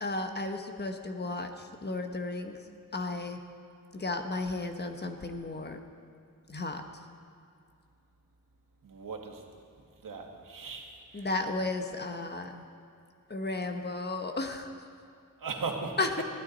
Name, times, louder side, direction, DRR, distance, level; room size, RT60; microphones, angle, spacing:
voice 1, 0.0-2.6 2.9-3.4 3.9-5.8 6.5-6.8 11.1-12.6 13.3-14.7 16.0-16.2, left 2 dB, 30° left, 5 dB, 1.1 m, -34 dB
voice 2, 8.8-9.5 10.0-11.3 15.4-16.2, right 4 dB, 85° right, 1 dB, 2.0 m, -38 dB
22.5 x 15.0 x 4.1 m, 2.5 s
wide cardioid pair, 155°, 32 cm